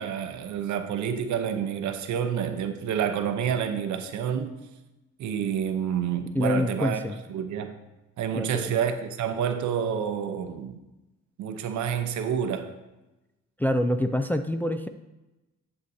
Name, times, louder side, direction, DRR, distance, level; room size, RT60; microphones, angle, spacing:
voice 1, 0.0-4.6 5.2-7.0 7.3-7.8 8.2-10.8 11.4-12.7, right 8 dB, 75° right, 8 dB, 0.8 m, -28 dB
voice 2, 6.3-7.2 8.3-8.8 13.6-14.9, left 1 dB, 5° left, 7 dB, 0.3 m, -26 dB
8.1 x 7.8 x 2.8 m, 1.0 s
cardioid pair, 90°, 30 cm